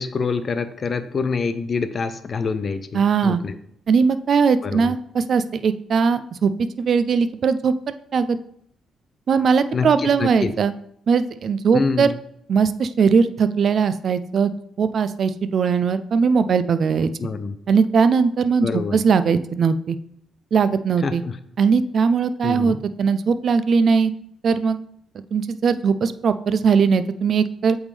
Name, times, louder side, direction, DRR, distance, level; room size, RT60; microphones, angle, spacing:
voice 1, 0.0-3.5 4.6-4.9 9.7-10.5 11.7-12.2 17.2-17.6 18.6-19.0 21.0-21.3 22.4-22.8, left 4 dB, 40° left, 11 dB, 0.5 m, -26 dB
voice 2, 2.9-3.4 3.9-6.5 6.8-8.4 9.3-10.7 11.1-12.1 12.5-14.5 14.8-17.1 17.7-20.0 20.5-21.2 21.6-24.1 24.4-24.8 25.3-27.8, right 5 dB, 55° right, 12 dB, 0.4 m, -19 dB
8.2 x 3.6 x 3.3 m, 0.70 s
cardioid pair, 90°, 0 cm